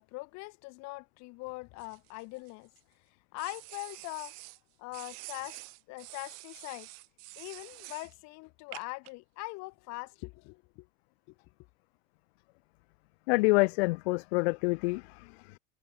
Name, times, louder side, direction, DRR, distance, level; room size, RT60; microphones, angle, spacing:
voice 1, 0.0-2.7 3.3-4.4 4.8-5.6 5.9-6.9 7.4-10.9 11.3-11.4, left 25 dB, 55° left, 7.5 m, -42 dB
sound 1, 1.8-2.8 3.4-4.6 4.9-8.1 8.7-9.1, right 40 dB or more, 60° right, 2.3 m, -48 dB
voice 2, 13.3-15.6, left 26 dB, 70° left, 0.6 m, -27 dB
supercardioid pair, 140°, 32 cm